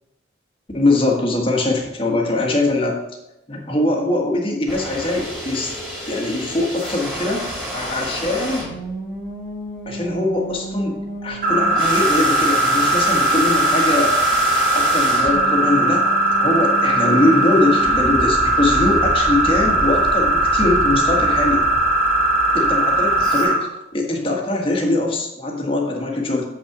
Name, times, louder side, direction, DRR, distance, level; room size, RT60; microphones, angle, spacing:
voice 1, 0.7-3.0 3.5-5.7 6.1-7.4 7.7-8.7 9.8-14.2 14.5-21.6 22.5-23.7 23.9-26.4, left 2 dB, 30° left, 0 dB, 1.5 m, -22 dB
sound 1, 4.7-23.4, equal, 5° right, 2.7 m, -30 dB
sound 2, 11.4-23.5, right 1 dB, 45° right, 1.9 m, -18 dB
7.4 x 5.7 x 4.9 m, 0.90 s
head